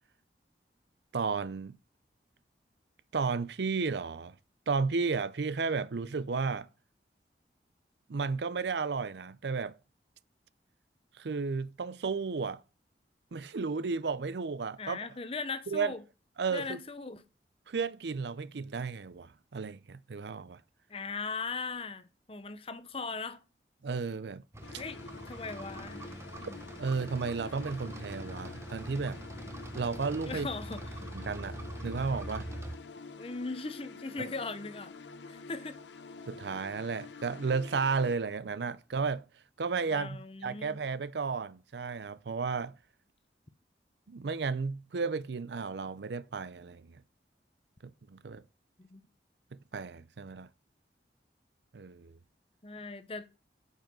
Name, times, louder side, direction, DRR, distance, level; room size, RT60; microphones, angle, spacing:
voice 1, 1.1-1.8 3.1-4.3 4.7-6.7 8.1-9.7 11.2-12.6 13.3-15.0 15.7-15.9 16.4-16.8 17.7-20.6 23.8-24.4 26.8-29.2 29.7-30.5 31.1-31.6 31.8-32.5 36.3-39.2 39.6-42.8 44.1-46.9 47.8-48.4 49.5-50.5 51.7-52.2, right 4 dB, 80° right, 0.5 m, -33 dB
voice 2, 14.8-16.0 16.5-17.2 20.9-23.4 24.8-26.1 26.4-26.6 30.3-30.9 33.1-34.9 35.3-35.8 39.9-40.8 48.8-49.0 52.6-53.3, left 4 dB, 30° left, 0.8 m, -39 dB
sound 1, 24.5-32.8, right 1 dB, 15° right, 0.8 m, -43 dB
sound 2, 24.6-38.2, left 4 dB, 90° left, 0.8 m, -48 dB
8.9 x 5.6 x 6.1 m
head